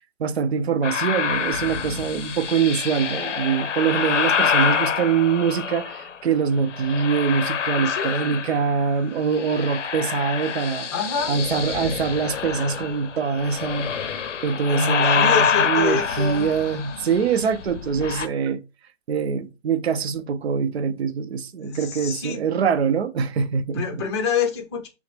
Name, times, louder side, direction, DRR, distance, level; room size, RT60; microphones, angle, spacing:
voice 1, 0.2-10.9 11.3-13.9 14.4-18.6 19.1-23.9, right 6 dB, 60° right, 0.6 m, -24 dB
sound 1, 0.8-6.2 6.7-8.9 9.2-18.3, left 7 dB, 70° left, 0.6 m, -26 dB
voice 2, 7.8-8.4 10.9-11.4 14.7-16.5 21.6-22.4 23.7-24.9, left 5 dB, 20° left, 0.6 m, -27 dB
5.6 x 2.1 x 3.2 m
figure-of-eight pair, 135°, 37 cm